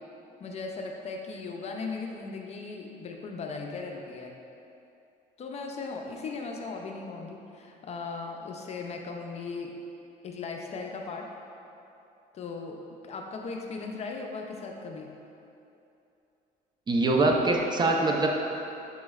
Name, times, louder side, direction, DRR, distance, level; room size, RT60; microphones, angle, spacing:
voice 1, 0.4-4.4 5.4-9.7 10.2-11.3 12.3-15.1, left 4 dB, 40° left, 2 dB, 0.4 m, -37 dB
voice 2, 16.9-18.3, right 2 dB, 25° right, 1 dB, 0.4 m, -23 dB
6.2 x 3.0 x 2.3 m, 2.8 s
cardioid pair, 110°, 17 cm